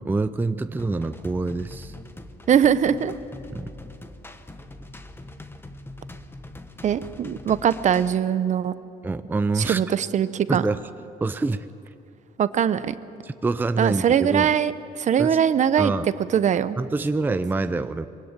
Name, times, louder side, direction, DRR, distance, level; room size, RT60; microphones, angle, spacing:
voice 1, 0.0-2.0 3.5-3.7 9.0-9.8 10.5-10.8 11.2-11.6 13.2-14.5 15.2-15.4 15.8-16.1 16.8-18.1, right 3 dB, 10° right, 11 dB, 0.5 m, -26 dB
sound 1, 0.8-8.2, left 2 dB, 15° left, 1.2 m, -42 dB
voice 2, 2.5-3.1 6.8-8.7 9.6-10.6 12.4-13.0 13.8-15.9 16.3-16.8, right 8 dB, 45° right, 14 dB, 0.8 m, -21 dB
22.5 x 17.5 x 8.9 m, 2.6 s
cardioid pair, 110°, 17 cm